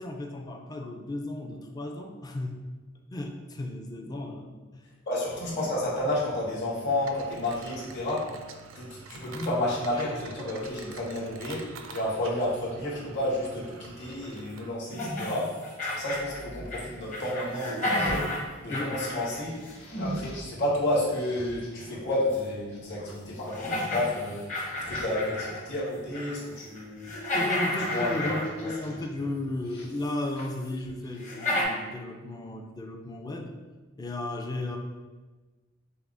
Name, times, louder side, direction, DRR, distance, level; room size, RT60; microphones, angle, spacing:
voice 1, 0.0-2.6 3.1-4.8 18.7-18.9 27.3-33.5 34.0-34.8, left 1 dB, 20° left, 3 dB, 0.3 m, -34 dB
voice 2, 5.1-8.3 8.7-18.3 18.6-19.6 19.9-24.5 24.9-27.1 27.9-28.7, left 1 dB, 60° left, -6 dB, 1.4 m, -31 dB
sound 1, 6.9-14.7, right 5 dB, 70° right, 0.4 m, -47 dB
sound 2, 14.9-16.8 17.1-20.2 22.3-22.4 23.0-23.1 23.5-25.6 26.0-26.4 26.7-29.0 30.0-30.1 30.6-30.7 31.2-31.6, left 1 dB, 35° left, 1.0 m, -32 dB
sound 3, 16.0-18.3 18.8-20.6 20.9-21.7 22.3-23.4 24.0-25.1 26.2-26.6 27.4-29.1 29.5-31.4, left 1 dB, 80° left, 1.5 m, -48 dB
5.6 x 2.0 x 3.8 m, 1.3 s
head